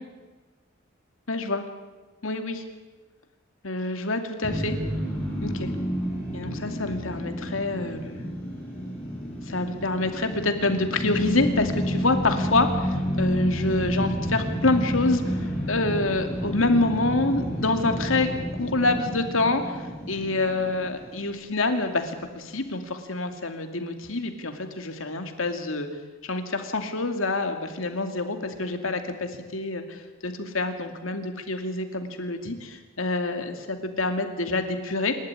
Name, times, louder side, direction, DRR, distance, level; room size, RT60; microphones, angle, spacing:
voice 1, 1.3-1.6 2.2-2.6 3.6-4.8 5.4-5.7 6.3-8.2 9.5-25.9 26.2-35.2, left 2 dB, 75° left, 6 dB, 2.6 m, -27 dB
sound 1, 4.4-21.6, equal, 5° left, 7.9 m, -30 dB
27.0 x 12.5 x 9.9 m, 1.3 s
head